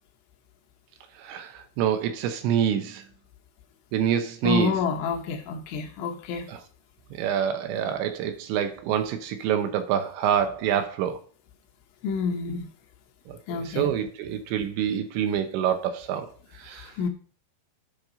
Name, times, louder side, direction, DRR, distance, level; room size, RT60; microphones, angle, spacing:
voice 1, 1.2-3.0 3.9-4.8 6.5-6.6 7.1-11.2 13.3-16.3 16.5-16.9, right 9 dB, 80° right, 3.1 m, -26 dB
voice 2, 4.4-6.5 12.0-12.7 13.5-13.9 17.0-17.1, left 6 dB, 80° left, 3.3 m, -28 dB
10.0 x 5.3 x 3.9 m
omnidirectional pair, 5.4 m